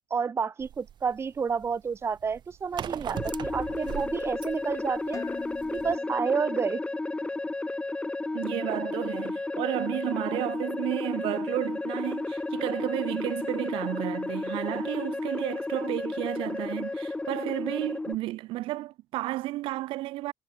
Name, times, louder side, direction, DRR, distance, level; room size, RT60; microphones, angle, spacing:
voice 1, 0.1-5.2 5.7-6.8, right 6 dB, 30° right, 0.6 m, -30 dB
sound 1, 0.6-6.0, right 10 dB, 60° right, 3.8 m, -39 dB
sound 2, 3.1-18.1, left 2 dB, 10° left, 0.6 m, -33 dB
Dishes pots and pans, 5.1-7.2, left 6 dB, 40° left, 2.8 m, -44 dB
voice 2, 8.3-20.3, right 17 dB, 85° right, 0.4 m, -32 dB
cardioid pair, 105°, 9 cm